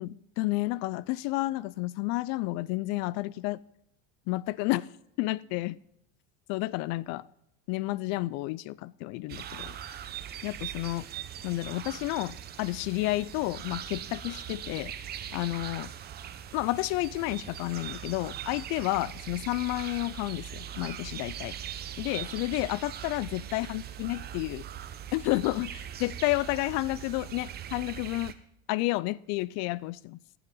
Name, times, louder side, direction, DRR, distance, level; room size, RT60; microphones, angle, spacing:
voice 1, 0.0-3.6 4.3-4.9 5.2-5.8 6.5-7.3 7.7-9.8 10.4-11.1 11.4-14.9 15.3-15.9 16.5-21.5 22.0-24.7 25.1-28.3 28.7-30.2, left 19 dB, 60° left, 0.4 m, -31 dB
sound 1, 9.3-28.3, right 10 dB, 35° right, 0.8 m, -41 dB
14.5 x 7.8 x 3.8 m
supercardioid pair, 120°, 29 cm